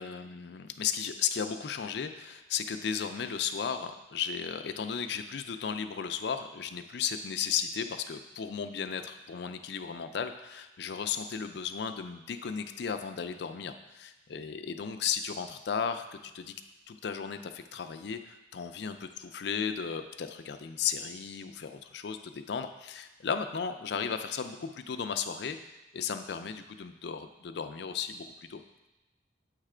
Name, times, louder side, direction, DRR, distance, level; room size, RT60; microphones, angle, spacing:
voice 1, 0.0-16.5 16.9-28.6, left 7 dB, 60° left, 8 dB, 0.4 m, -35 dB
8.0 x 3.3 x 4.9 m, 1.1 s
head